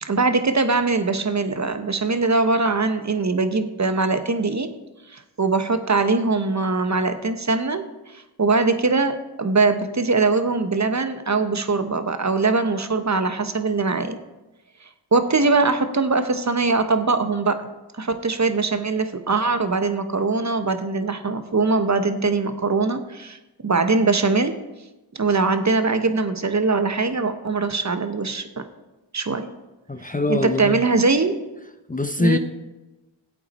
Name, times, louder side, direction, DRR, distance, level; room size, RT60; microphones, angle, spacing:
voice 1, 0.0-4.7 5.1-7.8 8.1-14.2 15.1-17.7 17.9-23.4 23.6-24.5 25.2-28.6 29.1-29.5 30.3-31.4 32.2-32.4, right 3 dB, 35° right, 9 dB, 1.1 m, -22 dB
voice 2, 29.9-30.8 31.9-32.4, left 2 dB, 15° left, 8 dB, 0.8 m, -23 dB
12.5 x 8.2 x 4.3 m, 1.1 s
cardioid pair, 45°, 46 cm